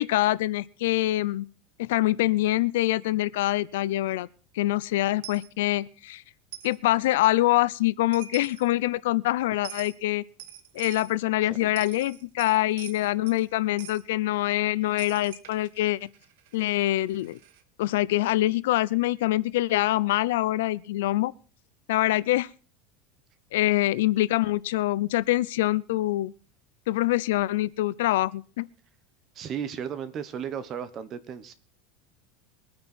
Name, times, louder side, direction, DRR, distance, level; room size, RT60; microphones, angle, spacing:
voice 1, 0.0-1.5 1.8-4.3 4.5-6.2 6.6-10.2 10.7-16.1 16.5-17.4 17.8-21.3 21.9-22.5 23.5-26.3 26.9-28.7, left 16 dB, 90° left, 0.6 m, -25 dB
Coin (dropping), 5.2-5.5 6.5-6.8 7.9-8.0 8.1-8.7 9.6-10.0 10.4-11.1 11.6-13.4 13.8-14.0 15.0-17.6, right 11 dB, 65° right, 1.5 m, -45 dB
voice 2, 11.4-11.7 29.3-31.5, right 8 dB, 25° right, 1.2 m, -35 dB
22.5 x 9.6 x 4.4 m
supercardioid pair, 175°, 0 cm